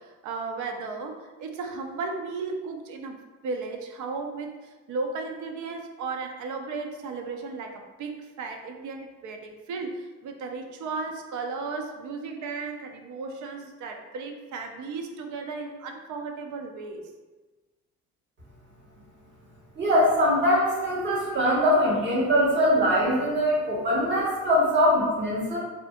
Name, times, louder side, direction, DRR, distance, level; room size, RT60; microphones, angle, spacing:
voice 1, 0.0-17.1, right 4 dB, 75° right, 4 dB, 0.5 m, -35 dB
voice 2, 19.8-25.6, equal, 40° right, -5 dB, 1.1 m, -22 dB
2.6 x 2.5 x 2.4 m, 1.2 s
cardioid pair, 90°, 30 cm